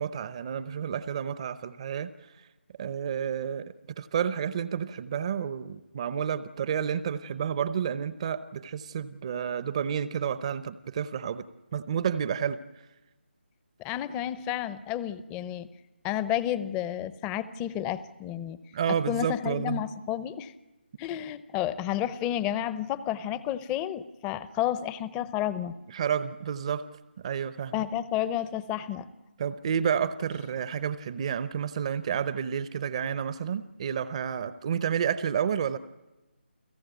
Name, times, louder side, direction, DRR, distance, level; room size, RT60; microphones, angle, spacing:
voice 1, 0.0-2.1 2.4-2.5 2.8-11.5 11.7-12.6 18.7-19.8 25.9-26.8 27.2-27.8 29.4-35.8, right 8 dB, 35° right, 13 dB, 0.8 m, -30 dB
voice 2, 13.8-15.7 16.0-18.6 19.1-20.5 21.0-25.7 27.7-29.1, left 11 dB, 15° left, 16 dB, 0.8 m, -31 dB
29.5 x 16.5 x 9.3 m, 1.1 s
figure-of-eight pair, 155°, 6 cm